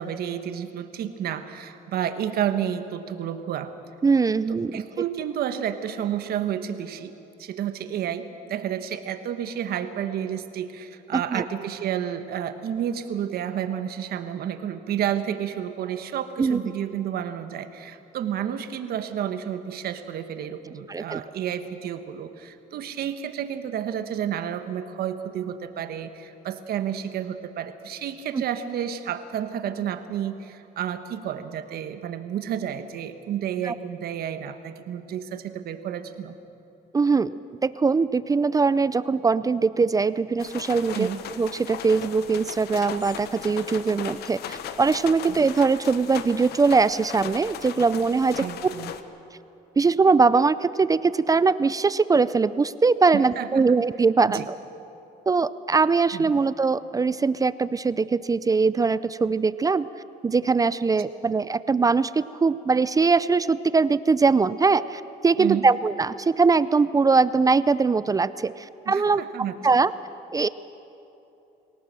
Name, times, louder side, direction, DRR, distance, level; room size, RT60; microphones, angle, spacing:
voice 1, 0.0-3.7 4.5-7.1 7.4-36.4 40.9-41.2 48.4-48.9 53.1-53.8 54.3-54.5 56.1-56.3 65.4-65.7 68.8-69.8, right 9 dB, 65° right, 9 dB, 1.4 m, -31 dB
voice 2, 4.0-4.7 11.1-11.4 16.4-16.6 20.9-21.2 28.3-28.4 33.6-33.7 36.9-37.3 37.6-48.5 49.8-54.6 55.3-59.9 60.2-69.2 69.6-69.9 70.3-70.5, right 4 dB, 20° right, 16 dB, 0.4 m, -21 dB
sound 1, 40.4-49.0, left 9 dB, 70° left, 1.1 m, -38 dB
23.5 x 17.5 x 7.6 m, 2.9 s
cardioid pair, 110°, 17 cm